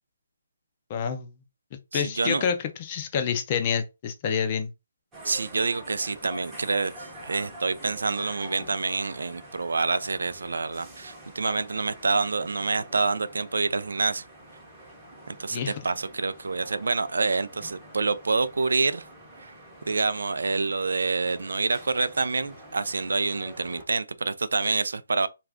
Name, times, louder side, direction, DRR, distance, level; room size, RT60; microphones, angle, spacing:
voice 1, 0.9-1.3 1.9-4.7 15.5-15.7, left 7 dB, 25° left, 0.4 m, -28 dB
voice 2, 1.9-2.5 5.2-14.2 15.3-19.1 19.4-19.5 19.9-25.3, right 4 dB, 80° right, 0.3 m, -27 dB
sound 1, 5.1-23.8, right 1 dB, 10° right, 0.7 m, -46 dB
2.4 x 2.3 x 3.4 m
hypercardioid pair, 170°, 0 cm